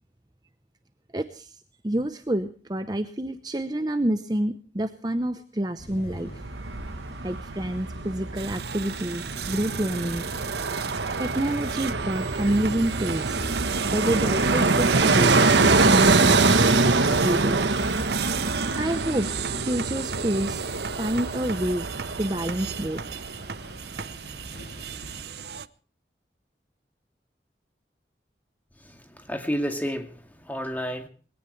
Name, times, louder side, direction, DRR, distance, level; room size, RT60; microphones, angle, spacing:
voice 1, 1.1-1.6 1.8-6.4 7.2-10.3 11.2-13.4 13.9-17.8 18.8-19.3 19.6-20.6 21.0-21.9 22.2-23.0, right 1 dB, 20° right, 0.8 m, -28 dB
sound 1, 5.8-25.3, left 1 dB, 60° left, 3.1 m, -44 dB
Fixed-wing aircraft airplane, 6.2-23.1 23.4-23.5, right 3 dB, 85° right, 1.3 m, -24 dB
sound 2, 8.3-25.7, right 8 dB, 65° right, 0.7 m, -36 dB
voice 2, 28.9-31.1, equal, 10° left, 2.1 m, -31 dB
21.0 x 17.5 x 3.2 m
head